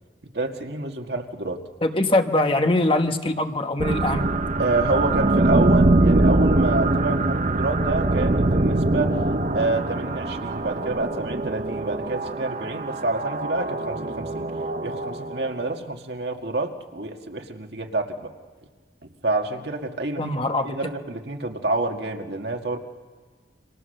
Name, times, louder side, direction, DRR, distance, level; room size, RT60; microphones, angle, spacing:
voice 1, 0.3-1.6 4.6-9.2 9.5-14.5 14.8-18.3 19.2-22.8, right 2 dB, 70° right, 3 dB, 2.0 m, -28 dB
voice 2, 1.8-4.3 20.2-20.8, left 2 dB, 30° left, 6 dB, 1.3 m, -22 dB
sound 1, 3.8-15.8, right 2 dB, 45° right, 0.8 m, -23 dB
29.5 x 26.0 x 6.7 m, 1.5 s
head